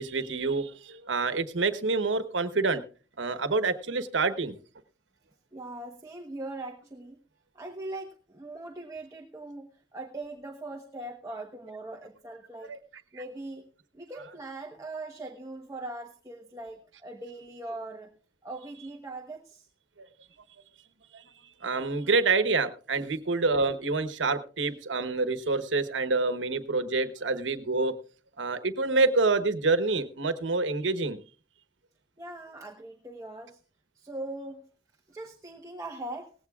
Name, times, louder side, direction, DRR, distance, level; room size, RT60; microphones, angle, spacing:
voice 1, 0.0-2.8 3.2-4.6 12.7-12.8 21.1-21.2 21.6-27.9 28.4-31.2, right 3 dB, 85° right, 11 dB, 1.1 m, -27 dB
voice 2, 5.5-7.2 7.5-9.7 9.9-12.7 13.1-13.6 13.9-18.1 18.4-19.7 32.2-33.6 33.9-34.7 35.1-36.3, right 2 dB, 15° right, 2 dB, 1.1 m, -40 dB
18.0 x 15.5 x 2.4 m, 0.37 s
head